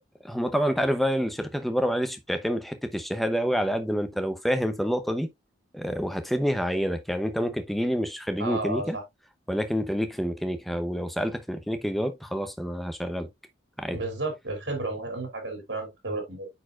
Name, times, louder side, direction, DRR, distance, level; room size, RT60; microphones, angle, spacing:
voice 1, 0.2-5.3 5.7-9.0 9.5-13.3 13.8-14.0, equal, ahead, 0.6 m, -28 dB
voice 2, 8.4-9.0 13.9-16.5, right 2 dB, 65° right, 2.9 m, -32 dB
9.0 x 4.4 x 2.4 m
head